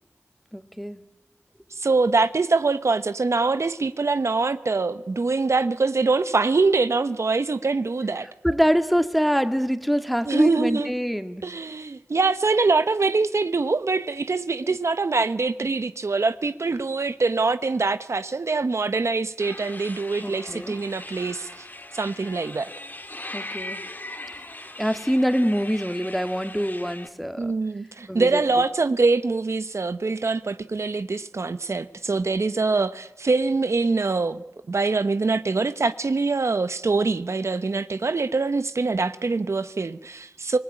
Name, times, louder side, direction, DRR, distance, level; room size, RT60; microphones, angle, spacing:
voice 1, 0.5-1.0 8.4-11.5 14.6-14.8 20.2-20.8 23.3-23.8 24.8-27.5 28.1-28.4, equal, ahead, 2.0 m, -24 dB
voice 2, 1.8-8.3 10.3-10.9 11.4-21.7 21.9-22.7 27.4-40.6, right 3 dB, 75° right, 1.0 m, -24 dB
sound 1, 19.4-27.1, left 2 dB, 40° left, 2.5 m, -39 dB
26.0 x 19.5 x 9.9 m
wide cardioid pair, 45°, 5 cm